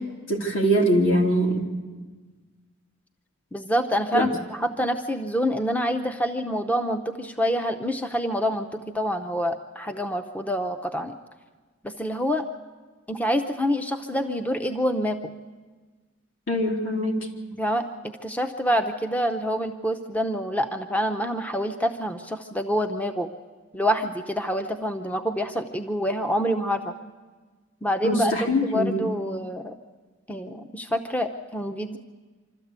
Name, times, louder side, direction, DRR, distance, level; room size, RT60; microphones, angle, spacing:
voice 1, 0.3-1.7 4.1-4.2 16.5-17.3 28.0-29.0, equal, 70° left, 0 dB, 3.1 m, -23 dB
voice 2, 3.5-11.2 11.8-12.4 13.1-15.2 17.6-23.3 23.7-26.9 27.8-29.8 30.3-32.0, equal, 10° left, 7 dB, 0.7 m, -27 dB
26.0 x 13.5 x 8.1 m, 1.4 s
head